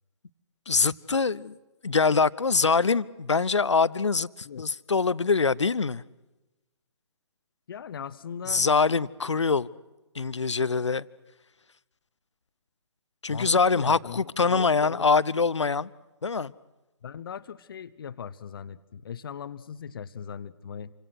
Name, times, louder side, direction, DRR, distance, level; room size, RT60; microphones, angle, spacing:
voice 1, 0.7-1.5 1.8-6.0 8.5-9.7 10.1-11.1 13.2-15.9 16.2-16.5, left 4 dB, 75° left, 19 dB, 0.8 m, -24 dB
voice 2, 7.7-8.6 13.3-15.1 17.0-20.9, left 7 dB, 50° left, 13 dB, 1.0 m, -39 dB
28.0 x 25.0 x 6.2 m, 1.1 s
figure-of-eight pair, 135°, 15 cm